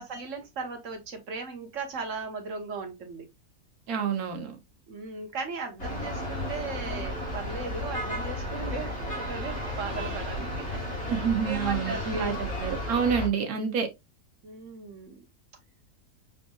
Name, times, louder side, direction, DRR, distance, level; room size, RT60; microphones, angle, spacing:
voice 1, 0.0-3.3 4.9-12.4 14.4-15.2, right 4 dB, 60° right, 1.5 m, -37 dB
voice 2, 3.9-4.6 11.1-13.9, right 7 dB, 85° right, 1.4 m, -28 dB
sound 1, 5.8-13.3, left 1 dB, 50° left, 2.2 m, -33 dB
5.4 x 4.2 x 2.3 m
omnidirectional pair, 1.5 m